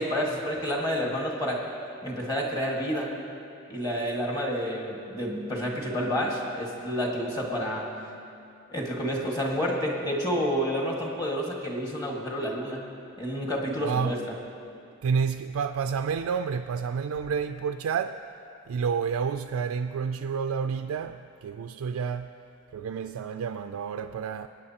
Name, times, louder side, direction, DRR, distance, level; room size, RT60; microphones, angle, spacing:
voice 1, 0.0-1.6 2.0-3.1 3.7-7.9 8.7-12.9 13.2-14.2, equal, 20° left, 1.7 m, -29 dB
voice 2, 13.8-14.2 15.0-18.2 18.7-22.3 22.7-24.5, right 6 dB, 80° right, 0.3 m, -29 dB
25.5 x 9.1 x 2.9 m
head